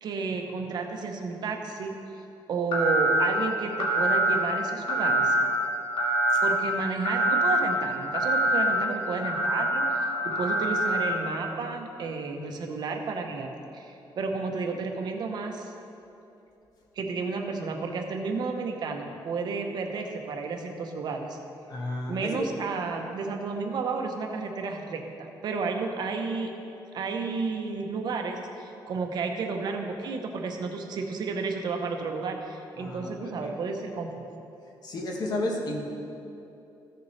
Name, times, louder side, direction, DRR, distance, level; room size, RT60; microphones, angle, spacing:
voice 1, 0.0-2.0 2.5-5.4 6.4-9.9 10.2-15.7 17.0-21.4 22.1-26.5 26.9-34.3, right 4 dB, 55° right, 3 dB, 0.8 m, -32 dB
sound 1, 2.7-3.3 3.8-4.4 4.9-5.4 6.0-6.5 7.0-7.6 8.1-8.7 9.2-11.2, right 1 dB, 85° left, 1.7 m, -24 dB
voice 2, 21.7-22.5 32.8-33.5 34.8-35.8, left 1 dB, 50° left, 0 dB, 1.3 m, -32 dB
14.5 x 6.8 x 3.2 m, 2.8 s
cardioid pair, 155°, 8 cm